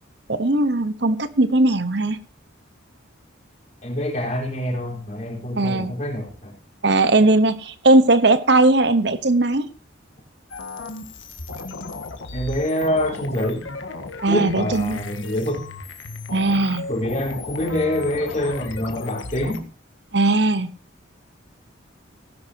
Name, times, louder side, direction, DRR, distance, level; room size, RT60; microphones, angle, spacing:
voice 1, 0.3-2.2 5.6-5.9 6.8-9.7 14.2-15.0 16.3-16.8 20.1-20.7, right 2 dB, 60° right, 13 dB, 1.0 m, -18 dB
voice 2, 3.8-6.5 12.3-13.7 14.3-15.6 16.9-19.7, left 1 dB, 35° left, -1 dB, 4.3 m, -25 dB
sound 1, 10.5-19.6, left 3 dB, 75° left, 1.7 m, -35 dB
17.5 x 10.5 x 2.8 m, 0.36 s
head